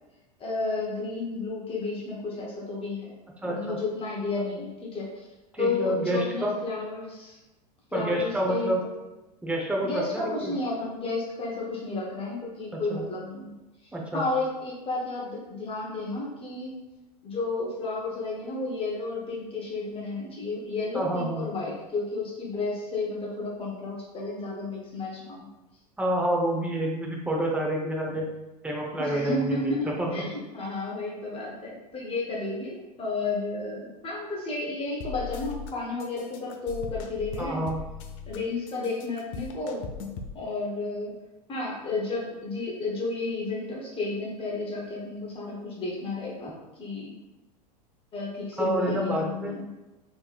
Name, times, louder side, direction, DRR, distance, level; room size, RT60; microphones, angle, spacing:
voice 1, 0.4-3.1 3.4-5.3 5.6-7.4 7.9-8.9 9.8-13.5 14.1-16.7 17.2-25.5 29.0-37.6 38.3-39.8 40.3-41.2 41.5-47.1 48.1-49.7, left 3 dB, 25° left, -3 dB, 0.9 m, -32 dB
voice 2, 3.4-3.8 5.5-6.5 7.9-8.8 9.4-10.5 12.7-13.1 13.9-14.2 20.9-21.5 26.0-28.3 28.6-30.3 37.4-37.8 48.6-49.5, right 1 dB, 5° right, -1 dB, 0.7 m, -28 dB
sound 1, 35.0-35.7 36.0-38.4 38.7-40.3, left 6 dB, 55° left, 0.5 m, -38 dB
3.4 x 3.1 x 2.4 m, 1.0 s
hypercardioid pair, 95°, 21 cm